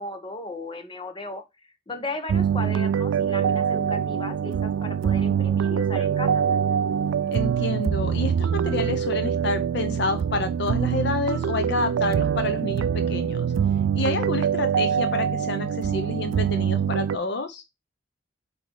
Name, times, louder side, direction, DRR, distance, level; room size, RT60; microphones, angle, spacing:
voice 1, 0.0-1.4 1.9-6.4, left 2 dB, 25° left, 7 dB, 1.1 m, -35 dB
sound 1, 2.3-17.2, right 8 dB, 90° right, 0.3 m, -24 dB
voice 2, 7.3-13.5 13.9-17.6, left 3 dB, 65° left, 8 dB, 0.7 m, -29 dB
8.0 x 3.0 x 4.6 m, 0.22 s
head